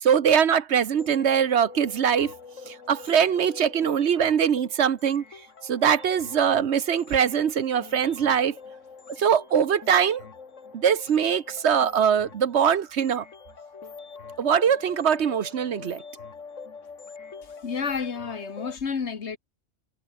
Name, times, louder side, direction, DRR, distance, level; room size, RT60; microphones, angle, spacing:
voice 1, 0.0-2.3 2.7-5.2 5.6-8.6 9.2-10.2 10.7-13.2 14.4-16.0, right 8 dB, 65° right, 1.2 m, -22 dB
sound 1, 1.0-18.8, left 5 dB, 80° left, 2.3 m, -44 dB
voice 2, 17.6-19.4, left 6 dB, 65° left, 1.7 m, -30 dB
omnidirectional pair, 1.3 m